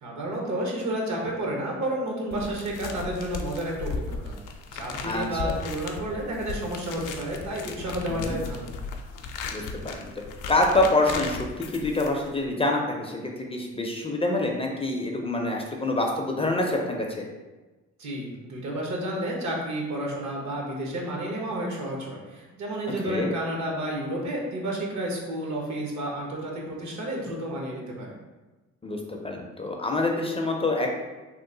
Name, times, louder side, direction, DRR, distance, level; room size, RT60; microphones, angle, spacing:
voice 1, 0.0-4.4 4.7-8.7 18.0-28.2, right 1 dB, 70° right, -1 dB, 1.0 m, -31 dB
sound 1, 2.3-12.5, left 4 dB, 85° left, 0.5 m, -36 dB
voice 2, 5.1-5.6 8.1-8.4 9.5-10.0 10.5-17.2 23.1-23.3 28.8-31.0, left 2 dB, 20° left, 1 dB, 0.4 m, -26 dB
3.0 x 2.1 x 3.7 m, 1.2 s
cardioid pair, 90°, 30 cm